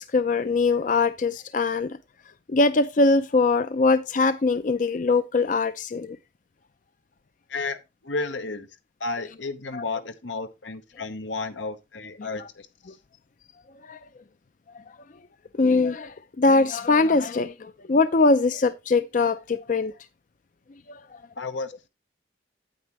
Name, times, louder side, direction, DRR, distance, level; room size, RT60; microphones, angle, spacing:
voice 1, 0.0-2.0 2.5-6.2 9.7-9.8 13.8-14.0 15.5-19.9 20.9-21.2, left 3 dB, 45° left, 0.5 m, -22 dB
voice 2, 7.5-8.7 9.0-12.7 21.4-21.7, left 3 dB, 90° left, 1.1 m, -32 dB
9.1 x 8.4 x 3.0 m
head